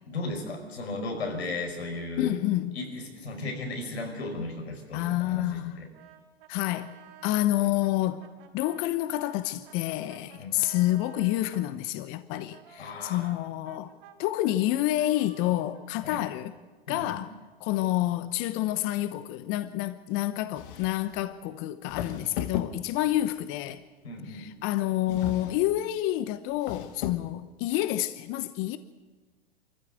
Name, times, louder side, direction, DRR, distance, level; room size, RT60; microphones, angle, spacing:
voice 1, 0.1-2.4 2.8-5.9 10.4-10.5 12.8-13.3 16.0-16.2 16.9-17.2 22.1-22.3 24.0-24.5, left 2 dB, 85° left, 5.2 m, -35 dB
voice 2, 2.2-2.8 4.9-5.8 6.5-6.9 7.2-8.2 8.5-13.9 14.2-16.5 16.9-17.3 17.6-23.8 24.3-28.8, left 15 dB, 45° left, 1.0 m, -28 dB
Brass instrument, 5.9-11.7 12.3-17.1, right 9 dB, 55° right, 5.2 m, -53 dB
sound 1, 20.5-21.2 21.9-23.2 25.1-25.8 26.5-27.4, left 10 dB, 60° left, 1.7 m, -36 dB
25.5 x 14.5 x 8.1 m
hypercardioid pair, 100°, 31 cm